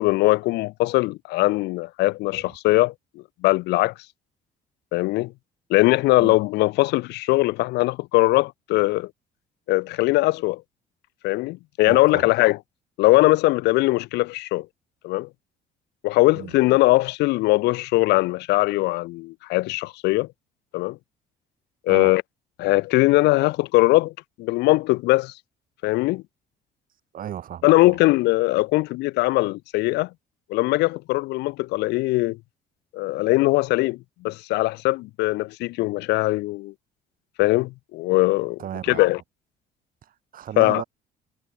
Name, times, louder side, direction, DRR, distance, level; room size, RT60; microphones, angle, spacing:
voice 1, 0.0-2.9 3.4-3.9 4.9-5.3 5.7-9.1 9.7-10.6 11.2-12.6 13.0-14.7 15.0-15.3 16.0-20.3 20.7-21.0 21.9-22.2 22.6-24.1 24.4-25.3 25.8-26.2 27.6-30.1 30.5-32.4 32.9-36.7 37.4-38.6 39.0-39.2 40.6-40.8, left 20 dB, 85° left, 0.6 m, -20 dB
voice 2, 11.9-12.3 16.3-16.5 21.9-22.2 27.1-28.0 38.6-39.1 40.0-40.8, right 10 dB, 55° right, 6.0 m, -35 dB
cardioid pair, 110°, 17 cm